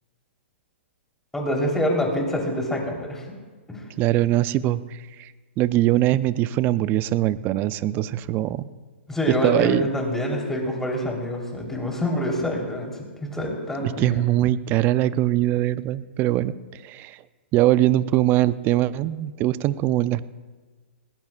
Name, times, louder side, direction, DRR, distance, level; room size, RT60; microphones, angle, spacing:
voice 1, 1.3-3.2 3.7-3.8 9.1-14.2, left 1 dB, 5° left, -1 dB, 3.7 m, -26 dB
voice 2, 4.0-5.3 5.6-8.7 9.3-9.9 13.8-17.2 17.5-20.3, right 14 dB, 30° right, 16 dB, 0.5 m, -22 dB
20.0 x 19.0 x 2.5 m, 1.4 s
hypercardioid pair, 120°, 6 cm